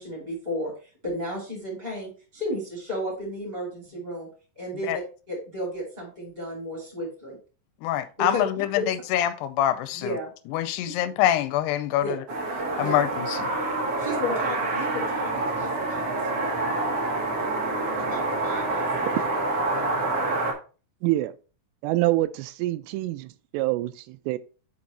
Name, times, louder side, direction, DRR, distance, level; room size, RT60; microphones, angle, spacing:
voice 1, 0.0-4.3 4.5-5.0 5.3-7.4 8.2-8.4 8.7-8.9 9.9-10.3 12.0-12.1 12.7-13.0 14.0-16.9 18.0-19.2 19.7-20.0, equal, 10° right, 2.5 m, -33 dB
voice 2, 7.8-10.2 10.5-12.2 12.8-13.5, left 12 dB, 85° left, 2.6 m, -25 dB
sound 1, 12.3-20.5, right 2 dB, 65° right, 1.5 m, -27 dB
voice 3, 21.0-21.4 21.8-24.4, right 17 dB, 90° right, 2.7 m, -26 dB
6.0 x 5.1 x 4.2 m
omnidirectional pair, 4.8 m